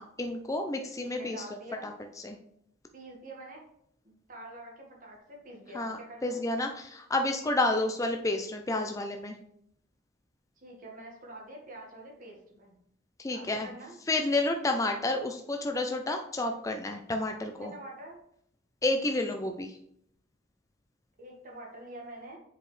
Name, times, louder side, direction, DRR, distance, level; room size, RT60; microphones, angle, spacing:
voice 1, 0.0-1.4 1.8-1.9 2.2-2.4 5.7-9.4 13.2-13.7 14.1-17.7 18.8-19.7, left 2 dB, 15° left, 4 dB, 0.4 m, -30 dB
voice 2, 1.0-1.9 2.9-3.7 4.0-6.4 10.6-12.7 13.3-14.0 17.4-18.2 21.2-22.4, right 1 dB, 40° right, -1 dB, 1.6 m, -46 dB
7.2 x 4.9 x 3.2 m, 0.72 s
head